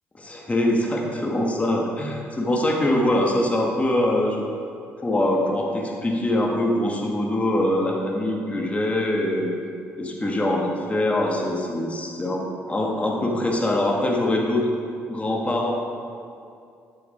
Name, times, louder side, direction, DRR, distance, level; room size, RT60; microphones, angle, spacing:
voice 1, 0.2-4.5 5.0-9.5 10.0-14.7 15.1-15.7, left 1 dB, 20° left, -1 dB, 1.9 m, -23 dB
13.0 x 9.0 x 3.7 m, 2.4 s
figure-of-eight pair, 45°, 7 cm